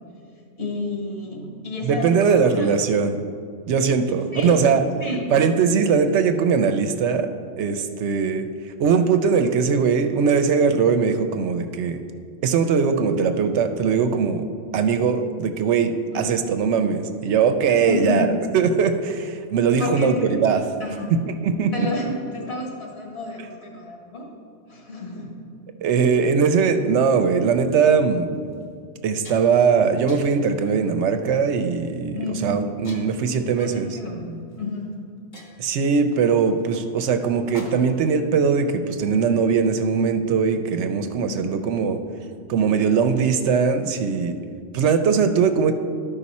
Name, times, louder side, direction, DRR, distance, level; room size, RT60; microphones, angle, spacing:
voice 1, 0.6-2.7 4.3-4.6 5.0-5.3 16.1-16.3 17.9-18.2 19.8-20.4 20.8-21.2 21.7-24.3 24.7-25.4 32.1-32.5 33.6-35.0 41.2-41.9, left 2 dB, 60° left, -1 dB, 1.9 m, -30 dB
voice 2, 1.8-3.2 3.7-4.8 5.3-7.3 7.6-8.5 8.8-12.0 12.4-14.4 14.7-18.3 18.5-20.6 21.4-21.9 25.8-28.3 29.0-33.9 35.6-42.0 42.5-44.3 44.7-45.7, right 6 dB, 75° right, 8 dB, 0.9 m, -20 dB
sound 1, 27.8-28.0 28.5-28.6 28.9-29.7 30.1-30.5 31.2-31.5 32.8-33.4 34.5-34.6 34.9-35.0 35.3-38.1, left 1 dB, 45° left, 1.1 m, -44 dB
12.0 x 5.4 x 4.1 m, 2.3 s
omnidirectional pair, 1.2 m